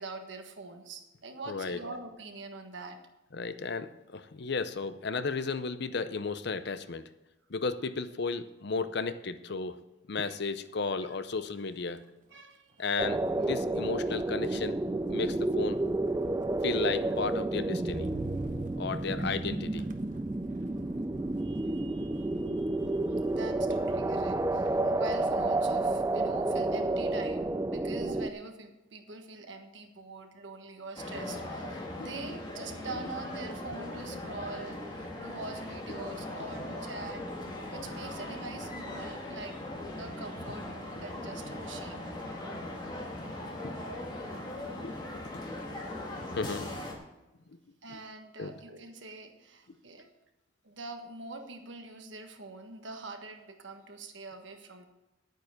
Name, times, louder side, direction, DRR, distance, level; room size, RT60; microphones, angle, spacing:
voice 1, 0.0-3.0 10.2-10.4 11.1-11.2 12.3-12.7 19.1-19.4 21.4-37.3 37.7-39.6 40.0-42.0 47.8-50.1 50.6-54.9, right 3 dB, 65° right, 5 dB, 1.4 m, -44 dB
voice 2, 1.5-1.8 3.3-7.1 7.5-9.8 10.1-12.1 12.8-14.8 15.1-15.8 16.6-18.1 18.8-19.9 22.4-22.8 31.9-32.1 43.6-43.7 44.2-45.2 46.3-46.7 48.4-48.5, left 4 dB, 60° left, 11 dB, 0.7 m, -34 dB
Motor vehicle (road), 10.6-11.0 11.3-25.8 26.1-26.6, right 2 dB, 40° right, 0.8 m, -48 dB
sound 1, 13.0-28.3, right 2 dB, 15° right, 0.4 m, -30 dB
sound 2, 31.0-46.9, left 1 dB, 25° left, 2.0 m, -39 dB
9.7 x 9.1 x 6.4 m, 0.99 s
head